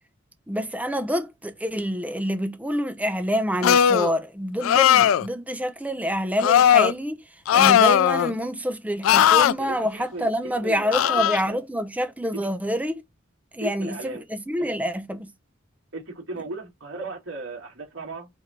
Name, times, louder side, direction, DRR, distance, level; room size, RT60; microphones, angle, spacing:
voice 1, 0.5-7.2 7.5-13.0 13.5-15.3, equal, 5° right, 0.7 m, -27 dB
sound 1, 3.6-4.1 4.6-5.3 6.4-6.9 7.5-8.3 9.0-9.5 10.9-11.4, left 9 dB, 85° left, 0.3 m, -17 dB
voice 2, 9.6-11.6 12.3-12.5 13.6-14.2 14.6-14.7 15.9-18.3, right 2 dB, 75° right, 2.5 m, -36 dB
4.4 x 3.8 x 3.0 m
head